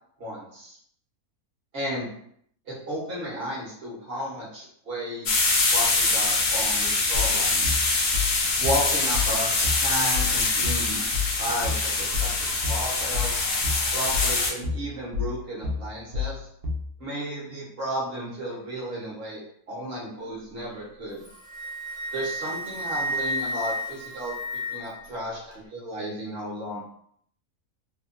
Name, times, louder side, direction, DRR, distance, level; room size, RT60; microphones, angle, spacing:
voice 1, 0.2-0.8 1.7-2.1 2.7-7.9 8.6-11.1 11.4-13.4 13.9-16.5 17.0-21.2 22.1-24.3 24.7-26.8, equal, 50° right, -5 dB, 0.9 m, -33 dB
sound 1, 5.3-14.5, left 3 dB, 65° left, 0.6 m, -24 dB
sound 2, 7.1-16.9, left 5 dB, 70° right, 0.5 m, -30 dB
Wind instrument woodwind instrument, 21.1-25.1, equal, ahead, 0.5 m, -32 dB
2.8 x 2.3 x 2.5 m, 0.67 s
omnidirectional pair, 1.5 m